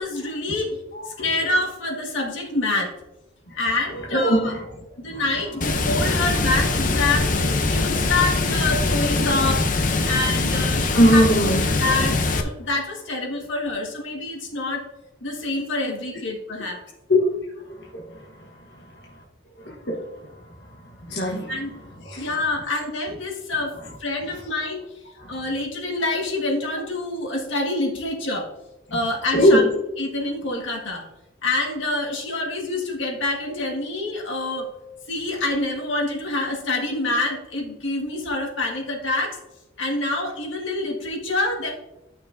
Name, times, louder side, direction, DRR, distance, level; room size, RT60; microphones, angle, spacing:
voice 1, 0.0-0.8 1.1-2.9 3.5-4.5 5.0-7.3 7.7-9.7 10.0-11.2 11.8-14.8 15.2-16.8 21.5-21.7 22.2-23.7 24.0-24.8 25.3-28.5 28.9-29.6 30.0-31.1 31.4-34.7 35.1-39.4 39.8-41.7, left 2 dB, 85° left, 1.7 m, -26 dB
voice 2, 0.9-1.3 3.5-4.7 5.1-5.6 10.9-11.8 16.1-16.2 16.6-16.7 17.1-17.3 17.5-19.2 19.6-22.4 23.8-23.9 24.3-24.4 25.2-25.4 28.9-29.0 29.3-29.7, equal, 60° left, 1.2 m, -23 dB
Water, 5.6-12.4, left 3 dB, 45° left, 0.7 m, -22 dB
12.0 x 6.0 x 2.6 m
head